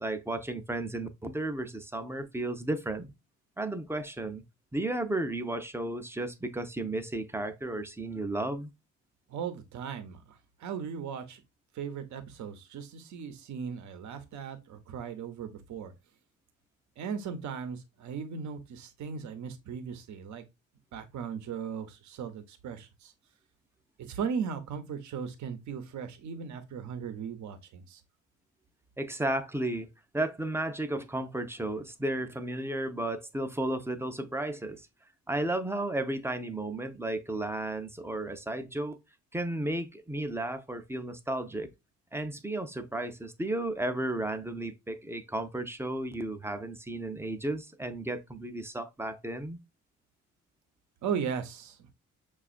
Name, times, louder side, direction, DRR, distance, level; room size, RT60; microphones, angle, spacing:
voice 1, 0.0-3.1 3.6-4.4 4.7-8.7 29.0-29.9 30.1-34.9 35.3-39.0 39.3-41.7 42.1-49.6, right 1 dB, 10° right, 0.5 m, -33 dB
voice 2, 9.3-11.4 11.7-15.9 17.0-20.4 20.9-23.1 24.0-28.0 51.0-51.9, right 7 dB, 70° right, 0.8 m, -37 dB
5.9 x 2.4 x 2.4 m
cardioid pair, 90°, 30 cm